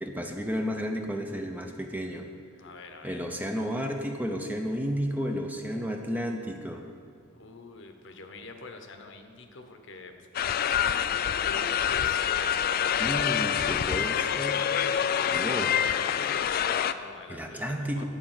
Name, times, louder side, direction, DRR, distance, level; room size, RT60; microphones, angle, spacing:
voice 1, 0.0-2.3 3.0-6.8 13.0-14.6 15.3-15.7 17.3-18.0, equal, 10° right, 3 dB, 0.6 m, -32 dB
voice 2, 2.6-3.2 7.3-10.1 10.5-13.4 14.1-17.6 18.0-18.1, left 4 dB, 65° left, 6 dB, 0.9 m, -46 dB
sound 1, 10.3-16.9, left 9 dB, 50° left, 0.3 m, -26 dB
10.0 x 5.0 x 7.2 m, 2.4 s
head